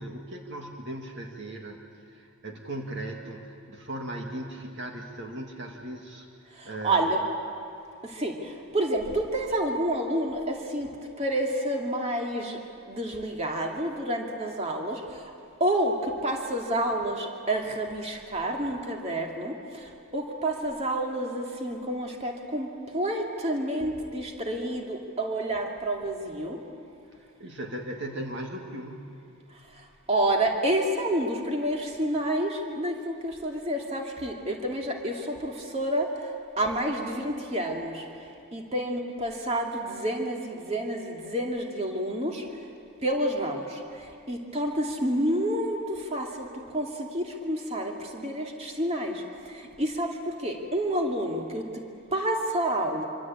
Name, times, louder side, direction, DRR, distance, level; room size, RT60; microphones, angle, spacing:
voice 1, 0.0-1.8 2.0-6.3 6.6-7.1 27.1-29.2, right 1 dB, 55° right, 2 dB, 2.2 m, -38 dB
voice 2, 6.5-7.2 8.0-10.9 11.2-12.6 12.9-15.3 15.6-26.6 29.7-36.3 36.6-42.4 43.0-51.7 52.1-53.1, right 1 dB, 30° right, 1 dB, 2.5 m, -29 dB
25.5 x 25.5 x 8.7 m, 2.5 s
head